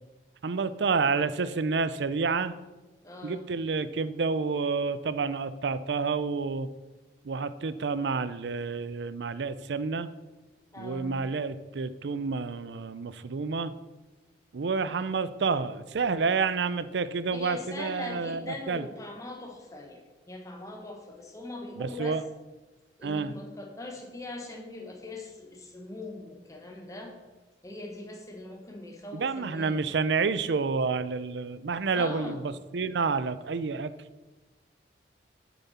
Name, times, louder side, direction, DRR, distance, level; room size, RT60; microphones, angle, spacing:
voice 1, 0.4-2.5 3.2-6.7 7.2-10.1 10.8-13.7 14.5-18.9 21.8-22.2 23.0-23.3 29.1-33.9, right 4 dB, 80° right, 14 dB, 0.5 m, -29 dB
voice 2, 3.0-3.4 10.7-11.2 14.8-15.1 17.3-20.0 20.3-22.2 23.0-27.1 27.6-29.8 31.9-32.5, left 2 dB, 20° left, 1 dB, 1.3 m, -41 dB
9.5 x 7.0 x 4.2 m, 1.2 s
head